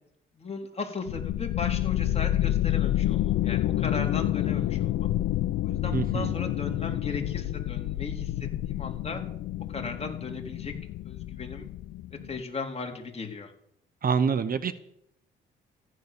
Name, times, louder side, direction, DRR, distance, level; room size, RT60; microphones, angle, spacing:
voice 1, 0.4-5.1 5.6-8.3 8.7-9.2 9.7-10.7 11.1-11.7 12.3-13.5, left 4 dB, 30° left, 2 dB, 3.8 m, -36 dB
sound 1, 1.1-12.4, left 14 dB, 85° left, 0.6 m, -29 dB
voice 2, 5.9-6.3 14.0-14.7, right 6 dB, 45° right, 13 dB, 1.1 m, -26 dB
15.0 x 11.0 x 6.9 m, 0.74 s
cardioid pair, 90°, 20 cm